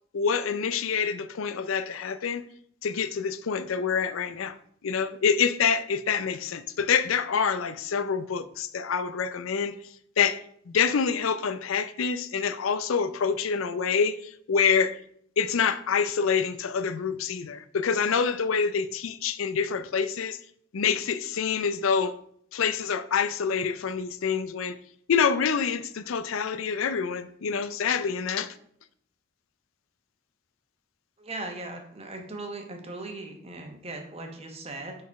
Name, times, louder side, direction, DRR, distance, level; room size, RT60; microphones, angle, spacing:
voice 1, 0.1-2.4 2.8-4.6 4.8-9.7 10.2-10.4 10.7-15.0 15.4-20.4 20.7-22.1 22.5-24.8 25.1-28.5, left 6 dB, 85° left, 0.5 m, -26 dB
voice 2, 31.2-35.0, right 2 dB, 30° right, 1.1 m, -38 dB
5.3 x 4.1 x 5.2 m
head